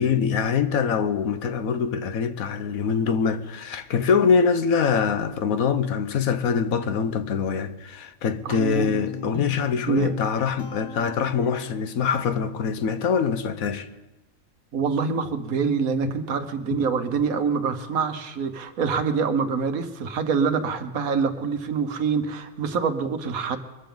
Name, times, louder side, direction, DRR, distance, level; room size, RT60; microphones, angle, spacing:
voice 1, 0.0-13.9, left 6 dB, 85° left, 1.3 m, -24 dB
voice 2, 8.4-8.9 9.8-10.1 14.7-23.6, right 5 dB, 85° right, 1.5 m, -25 dB
Guitar, 8.7-12.0, left 3 dB, 20° left, 0.9 m, -38 dB
22.5 x 14.0 x 3.9 m
omnidirectional pair, 1.4 m